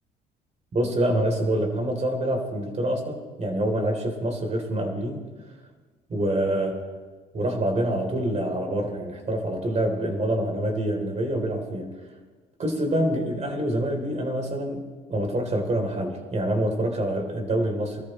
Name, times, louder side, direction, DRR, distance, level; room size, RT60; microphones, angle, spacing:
voice 1, 0.7-5.2 6.1-6.8 7.3-12.0 12.6-18.0, right 1 dB, 35° right, 2 dB, 3.7 m, -26 dB
25.5 x 13.5 x 3.3 m, 1.4 s
cardioid pair, 90°, 19 cm